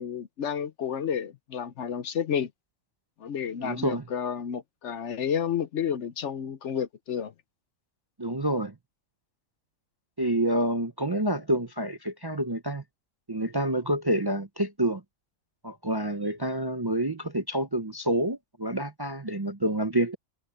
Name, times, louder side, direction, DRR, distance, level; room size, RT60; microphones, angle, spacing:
voice 1, 0.0-2.5 3.2-7.3, left 8 dB, 60° left, 1.0 m, -31 dB
voice 2, 3.6-4.0 8.2-8.7 10.2-12.8 13.3-15.0 15.6-20.2, right 1 dB, 25° right, 0.6 m, -28 dB
omnidirectional pair, 1.5 m